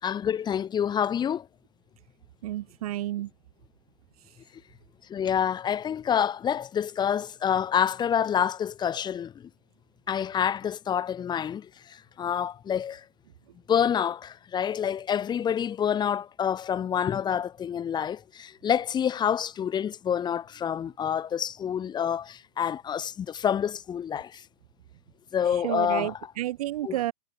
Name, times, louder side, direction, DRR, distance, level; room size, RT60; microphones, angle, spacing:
voice 1, 0.0-1.5 5.1-9.5 10.1-13.0 13.7-24.4 25.3-26.1 26.8-27.0, left 8 dB, 20° left, 2.2 m, -27 dB
voice 2, 2.4-3.3 25.5-27.1, right 14 dB, 65° right, 1.6 m, -31 dB
hypercardioid pair, 125°, 20 cm